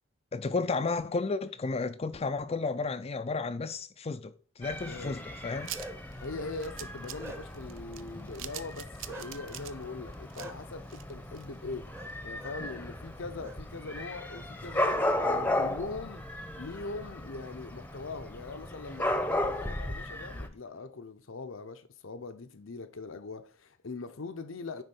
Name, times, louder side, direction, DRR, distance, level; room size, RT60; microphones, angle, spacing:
voice 1, 0.3-5.7, left 3 dB, 30° left, 0.4 m, -32 dB
Dog / Cat, 4.6-20.5, left 1 dB, 10° left, 0.8 m, -35 dB
voice 2, 4.9-5.2 6.2-11.9 12.2-16.2 16.6-24.8, left 3 dB, 75° left, 0.7 m, -41 dB
Bark, 5.5-6.2 6.7-7.7 9.1-9.3 10.4-10.5 11.9-12.1 12.4-12.6 13.4-13.6 13.9-14.8, right 1 dB, 15° right, 0.9 m, -45 dB
sound 1, 5.6-11.7 12.1-12.2 12.5-12.6, right 11 dB, 70° right, 0.6 m, -44 dB
10.0 x 3.7 x 5.3 m
head